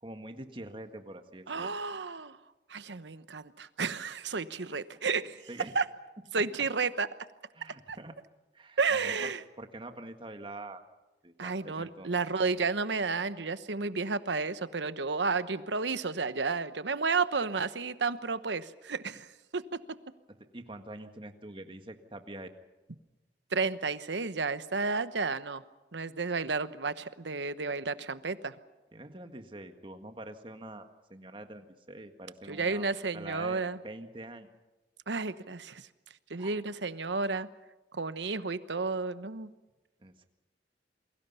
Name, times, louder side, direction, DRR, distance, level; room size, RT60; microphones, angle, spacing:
voice 1, 0.0-1.7 5.5-5.7 6.4-6.5 7.5-8.2 8.5-9.3 9.6-10.8 11.2-12.1 20.4-22.5 28.9-32.9 33.1-34.5 36.4-36.6 40.0-40.3, right 1 dB, 30° right, 7 dB, 1.7 m, -45 dB
voice 2, 1.5-2.4 2.7-5.4 5.7-5.8 6.3-7.1 7.9-8.0 8.8-9.4 11.4-19.3 19.5-19.8 23.5-25.6 25.9-28.5 32.5-33.8 35.1-35.8 36.3-37.5 37.9-39.5, right 4 dB, 90° right, 13 dB, 1.1 m, -32 dB
29.0 x 22.5 x 5.7 m, 1.1 s
head